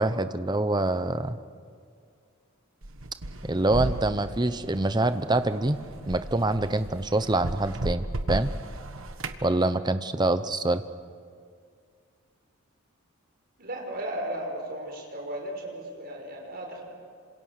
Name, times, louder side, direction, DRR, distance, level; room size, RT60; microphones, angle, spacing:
voice 1, 0.0-1.4 3.5-5.8 6.1-8.5 9.4-10.8, right 2 dB, 20° right, 11 dB, 0.8 m, -25 dB
sound 1, 2.8-9.4, right 1 dB, 70° right, 1.4 m, -35 dB
voice 2, 13.6-16.8, right 1 dB, 45° right, 1 dB, 5.3 m, -35 dB
27.5 x 26.5 x 6.6 m, 2.2 s
head